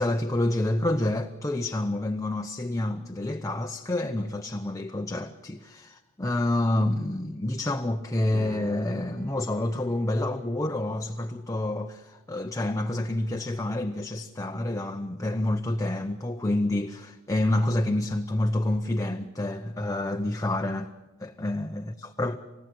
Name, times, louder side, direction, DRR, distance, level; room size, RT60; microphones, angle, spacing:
voice 1, 0.0-20.9 21.2-22.4, left 1 dB, 15° left, 0.7 m, -28 dB
sound 1, 8.3-15.1, equal, 50° right, 3.9 m, -48 dB
29.0 x 15.5 x 7.8 m
head